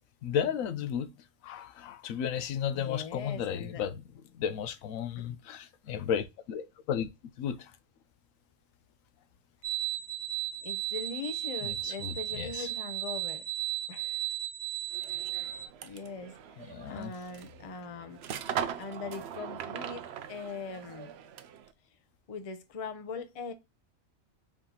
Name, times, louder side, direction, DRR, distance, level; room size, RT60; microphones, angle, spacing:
voice 1, 0.2-1.1 1.4-4.0 4.3-7.1 7.4-7.7 11.6-12.7 16.6-17.1, left 8 dB, 80° left, 1.0 m, -34 dB
voice 2, 2.7-3.8 5.2-5.4 10.6-13.5 13.9-14.2 15.3-18.2 18.8-21.1 22.3-23.5, left 5 dB, 35° left, 0.6 m, -41 dB
sound 1, 9.6-15.7, right 14 dB, 85° right, 1.1 m, -35 dB
sound 2, 14.9-21.7, right 8 dB, 65° right, 0.7 m, -40 dB
4.7 x 2.9 x 3.8 m
omnidirectional pair, 1.4 m